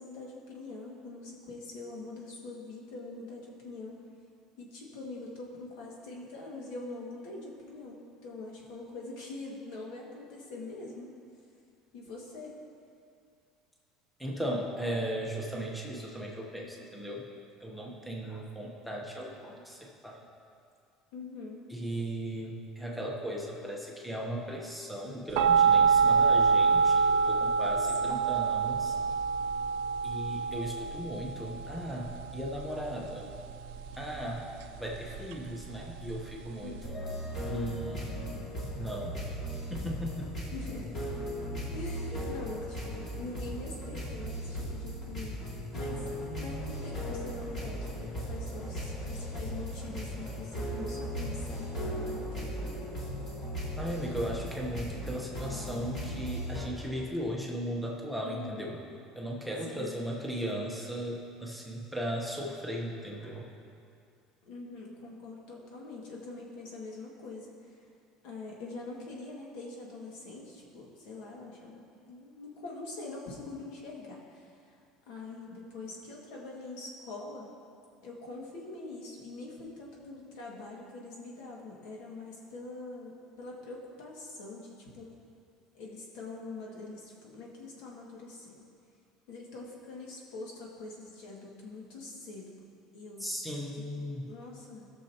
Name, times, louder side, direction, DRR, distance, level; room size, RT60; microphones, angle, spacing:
voice 1, 0.0-4.0 4.6-11.1 11.9-12.6 21.1-21.7 28.0-28.2 36.6-36.9 40.5-40.9 41.7-46.1 46.4-52.6 58.2-58.7 59.6-60.0 64.4-67.8 68.2-71.8 72.1-74.8 75.1-77.5 78.0-85.1 85.7-88.6 89.3-93.3 94.2-94.8, left 3 dB, 65° left, -2 dB, 1.9 m, -44 dB
voice 2, 14.2-17.3 17.6-20.2 21.7-29.0 30.0-33.2 33.9-34.4 34.8-37.0 37.5-38.4 38.8-39.2 39.5-40.3 53.8-58.8 59.2-63.5 93.2-94.3, equal, ahead, -2 dB, 0.9 m, -37 dB
sound 1, 25.4-36.9, right 5 dB, 75° right, 0.5 m, -27 dB
sound 2, 36.8-56.7, equal, 30° left, 2.2 m, -37 dB
sound 3, 46.5-54.4, left 2 dB, 45° left, 1.3 m, -50 dB
18.0 x 6.5 x 2.9 m, 2.4 s
cardioid pair, 180°, 0 cm